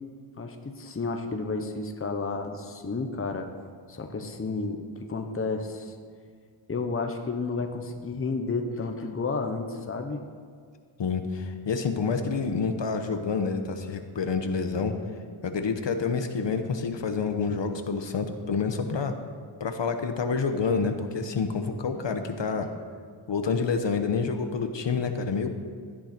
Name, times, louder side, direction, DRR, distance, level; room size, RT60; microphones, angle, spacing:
voice 1, 0.4-3.5 3.9-5.9 6.7-10.2, left 3 dB, 25° left, 5 dB, 1.0 m, -31 dB
voice 2, 11.0-14.9 15.4-19.1 19.6-22.7 23.3-25.5, left 5 dB, 60° left, 6 dB, 1.1 m, -28 dB
16.5 x 11.0 x 4.4 m, 2.1 s
wide cardioid pair, 155°, 49 cm